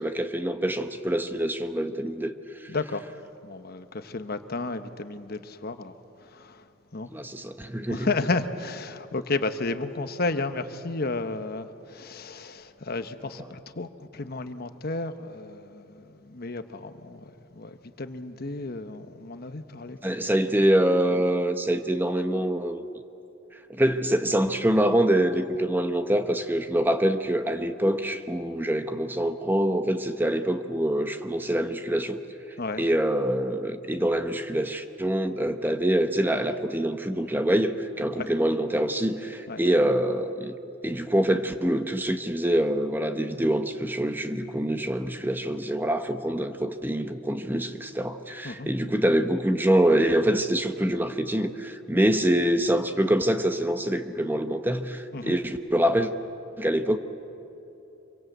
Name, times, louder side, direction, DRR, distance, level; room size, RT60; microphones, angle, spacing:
voice 1, 0.0-2.3 2.6-2.7 7.1-8.1 20.0-22.8 23.7-32.2 32.8-40.5 40.8-56.1 56.6-57.0, right 1 dB, 10° right, 0.9 m, -25 dB
voice 2, 2.7-3.0 3.4-5.9 6.3-6.6 6.9-7.1 7.9-17.2 17.5-20.0 32.6-32.8 38.2-38.3 39.5-39.6 48.4-48.7 55.1-55.3, left 3 dB, 50° left, 1.1 m, -32 dB
26.5 x 23.5 x 8.0 m
head